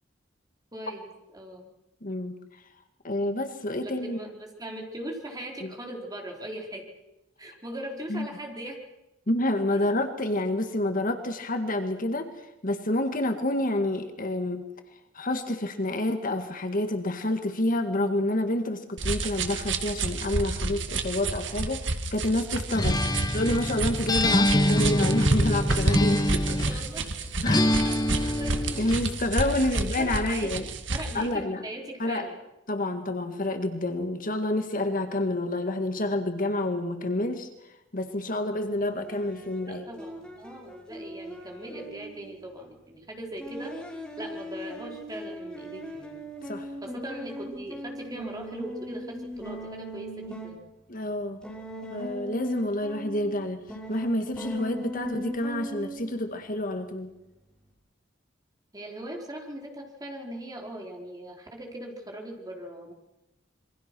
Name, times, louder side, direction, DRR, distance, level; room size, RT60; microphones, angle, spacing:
voice 1, 0.7-1.1 1.3-1.7 3.8-6.8 7.4-8.8 9.7-9.9 22.8-23.4 26.4-27.0 27.8-28.0 28.4-28.5 29.5-32.4 39.7-43.7 44.2-46.1 46.8-50.6 58.7-62.9, right 1 dB, 20° right, 1 dB, 4.3 m, -40 dB
voice 2, 2.0-2.3 3.0-4.2 5.6-5.7 8.1-8.3 9.3-12.3 12.6-14.6 15.1-23.0 23.3-26.8 27.4-27.7 28.2-28.3 28.8-30.7 31.1-31.7 32.0-32.3 32.7-37.5 37.9-39.9 46.4-46.7 50.9-51.4 51.9-53.6 53.9-57.1, left 1 dB, 45° left, 7 dB, 1.9 m, -28 dB
sound 1, 19.0-31.2, right 2 dB, 70° right, 1.9 m, -30 dB
Acoustic guitar, 22.7-26.9 27.5-29.0, left 1 dB, 20° left, 1.3 m, -25 dB
sound 2, 38.6-42.4 43.4-50.6 51.4-53.4 53.7-56.2, equal, 5° left, 5.1 m, -39 dB
27.0 x 23.5 x 6.2 m, 0.92 s
head